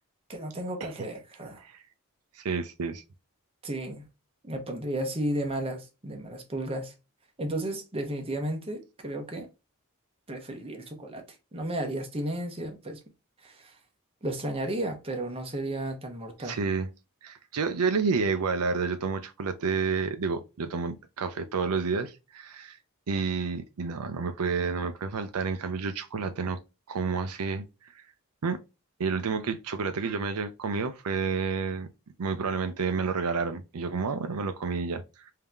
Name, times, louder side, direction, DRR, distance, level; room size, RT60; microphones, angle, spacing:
voice 1, 0.3-1.6 3.6-4.1 4.4-6.9 7.4-9.5 10.3-11.2 11.5-13.0 13.4-13.8 14.2-16.6, right 1 dB, 25° right, 0.9 m, -33 dB
voice 2, 2.4-3.0 16.4-16.9 17.2-22.8 23.1-26.6 26.9-28.0 28.4-28.6 29.0-31.9 32.2-35.3, right 5 dB, 85° right, 0.5 m, -30 dB
3.6 x 2.8 x 3.4 m
head